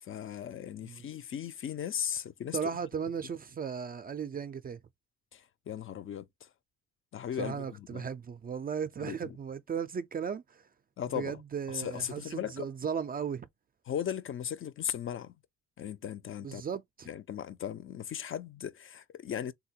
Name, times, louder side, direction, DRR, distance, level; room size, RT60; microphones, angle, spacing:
voice 1, 0.0-2.6 5.3-6.5 7.1-8.1 9.0-9.4 11.0-11.4 11.7-12.7 13.9-15.3 15.8-16.6 17.1-19.5, left 9 dB, 45° left, 0.4 m, -37 dB
voice 2, 2.5-4.8 7.4-10.7 11.1-13.5 16.4-17.1, right 7 dB, 30° right, 0.4 m, -36 dB
3.4 x 2.3 x 2.7 m
cardioid pair, 95°, 30 cm